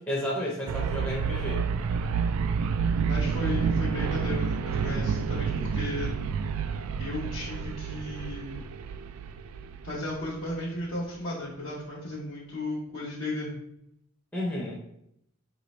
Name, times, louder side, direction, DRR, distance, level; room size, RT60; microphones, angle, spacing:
voice 1, 0.0-1.7 14.3-14.8, equal, 10° left, -4 dB, 0.6 m, -32 dB
sound 1, 0.7-10.6, right 6 dB, 90° right, 0.3 m, -29 dB
voice 2, 3.1-6.1 7.0-8.6 9.8-13.5, left 2 dB, 70° left, -7 dB, 0.8 m, -35 dB
4.9 x 2.6 x 3.1 m, 0.75 s
head